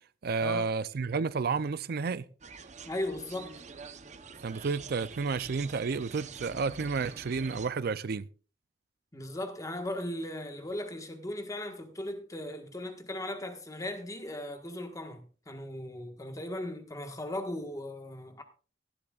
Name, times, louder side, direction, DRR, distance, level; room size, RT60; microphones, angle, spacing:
voice 1, 0.2-2.2 4.4-8.2, right 4 dB, 55° right, 0.4 m, -31 dB
sound 1, 2.4-7.7, right 5 dB, 40° right, 0.8 m, -47 dB
voice 2, 2.8-3.6 9.1-18.4, left 1 dB, 20° left, 1.4 m, -37 dB
17.0 x 12.0 x 2.4 m
head